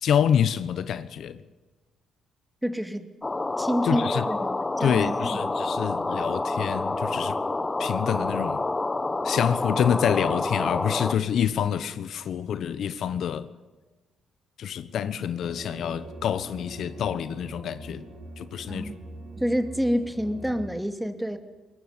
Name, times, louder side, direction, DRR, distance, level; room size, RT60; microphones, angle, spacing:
voice 1, 0.0-1.4 3.8-4.3 4.8-7.4 7.8-8.6 9.2-13.5 14.6-18.0 18.4-18.9, left 8 dB, 70° left, 1.1 m, -27 dB
voice 2, 2.6-3.1 3.6-5.4 18.7-18.9 19.4-21.4, equal, 5° right, 2.7 m, -28 dB
sound 1, 3.2-11.1, left 2 dB, 20° left, 1.4 m, -28 dB
sound 2, 15.4-20.7, right 2 dB, 55° right, 4.3 m, -43 dB
23.0 x 20.0 x 9.7 m
cardioid pair, 90°, 0 cm